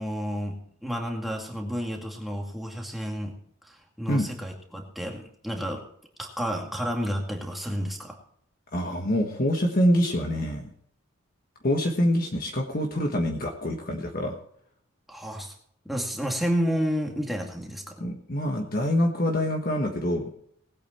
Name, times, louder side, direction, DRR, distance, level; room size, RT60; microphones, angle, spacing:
voice 1, 0.0-3.4 3.6-5.8 6.2-8.2 15.1-15.5 15.9-18.0, equal, ahead, 0 dB, 2.2 m, -31 dB
voice 2, 8.7-10.7 11.6-14.3 18.0-20.3, equal, 45° left, 2 dB, 1.4 m, -25 dB
19.5 x 8.7 x 4.4 m, 0.67 s
head